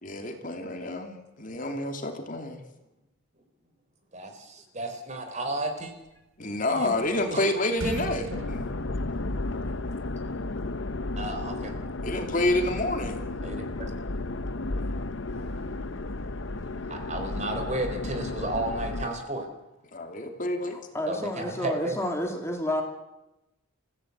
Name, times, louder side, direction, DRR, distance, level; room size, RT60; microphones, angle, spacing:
voice 1, 0.0-2.6 6.4-8.6 12.0-13.2 19.9-20.8, left 1 dB, 40° left, 2.8 m, -28 dB
voice 2, 4.1-5.9 6.7-7.0 7.3-7.5 11.2-11.8 13.4-13.9 15.3-15.7 16.9-19.5 21.1-22.0, right 1 dB, 35° right, 3.8 m, -33 dB
sound 1, 6.6-7.4 7.7-9.8, right 2 dB, 75° right, 1.2 m, -37 dB
sound 2, 8.3-19.1, left 2 dB, 70° left, 1.0 m, -33 dB
voice 3, 20.7-22.8, left 1 dB, 15° left, 2.5 m, -30 dB
28.0 x 16.0 x 8.2 m
head